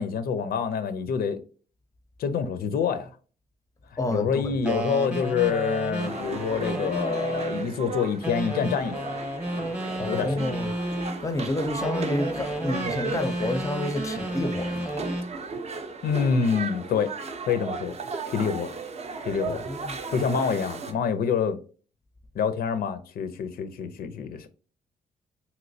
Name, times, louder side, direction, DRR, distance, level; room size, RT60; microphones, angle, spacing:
voice 1, 0.0-1.4 2.2-3.1 4.1-9.2 9.5-10.5 16.0-17.1 17.4-17.9 18.3-18.7 19.3-19.6 20.1-21.6 22.3-24.5, left 6 dB, 80° left, 0.4 m, -27 dB
voice 2, 4.0-4.6 10.0-10.7 11.2-14.9 19.4-20.0, left 1 dB, 20° left, 0.4 m, -29 dB
sound 1, 4.6-7.7 8.2-11.2 11.8-15.3, right 1 dB, 10° right, 0.8 m, -31 dB
sound 2, 6.0-20.9, right 4 dB, 45° right, 0.5 m, -36 dB
3.0 x 2.9 x 2.6 m
wide cardioid pair, 155°, 16 cm